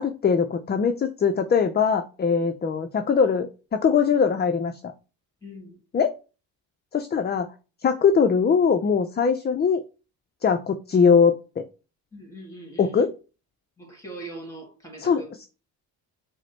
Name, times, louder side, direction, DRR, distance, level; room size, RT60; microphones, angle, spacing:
voice 1, 0.0-4.7 5.9-6.1 6.9-7.5 7.8-9.8 10.4-11.6 12.8-13.1 15.0-15.5, left 6 dB, 25° left, 0.4 m, -21 dB
voice 2, 5.4-5.8 12.1-13.1 13.8-15.3, right 2 dB, 5° left, 2.1 m, -41 dB
4.8 x 2.1 x 4.3 m
supercardioid pair, 60°, 43 cm